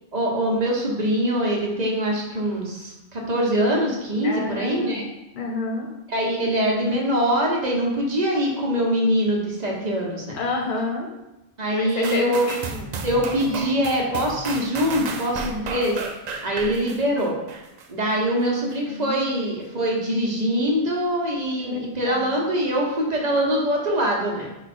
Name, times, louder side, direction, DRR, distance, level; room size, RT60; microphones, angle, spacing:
voice 1, 0.1-5.1 6.1-10.4 11.6-12.5 13.0-16.0 16.4-17.3 17.9-24.5, equal, 40° right, -2 dB, 0.9 m, -23 dB
voice 2, 4.2-5.0 5.3-5.9 10.3-11.1 11.8-13.0 18.8-19.3 21.6-22.4, left 3 dB, 50° left, 1 dB, 0.9 m, -29 dB
sound 1, 12.0-17.9 18.4-18.5, right 4 dB, 60° right, 0.4 m, -33 dB
4.9 x 2.3 x 4.2 m, 0.96 s
omnidirectional pair, 1.1 m